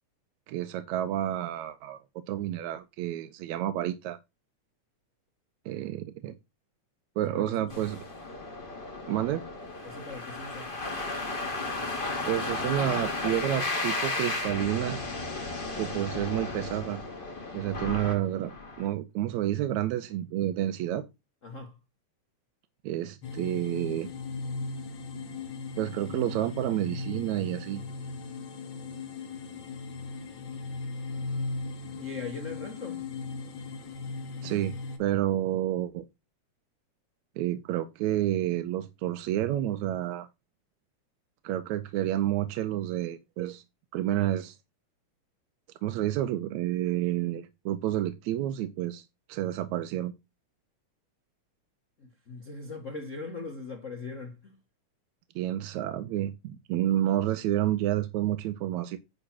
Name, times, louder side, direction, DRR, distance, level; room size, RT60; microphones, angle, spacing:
voice 1, 0.5-2.0 2.3-4.2 5.7-6.4 7.2-8.0 9.1-9.4 12.2-15.0 15.7-17.0 17.5-18.5 18.8-21.1 22.8-24.1 25.8-27.8 34.4-34.7 35.0-36.0 37.4-40.3 41.4-43.6 43.9-44.6 45.8-50.1 55.4-59.0, right 13 dB, 80° right, 2.0 m, -29 dB
voice 2, 7.2-7.9 9.8-10.8 21.4-21.8 32.0-33.0 52.0-54.6, left 3 dB, 75° left, 0.7 m, -40 dB
sound 1, 7.7-18.9, left 2 dB, 20° left, 2.1 m, -34 dB
sound 2, 23.2-35.0, left 3 dB, 45° left, 2.1 m, -37 dB
10.0 x 3.8 x 5.9 m
omnidirectional pair, 3.4 m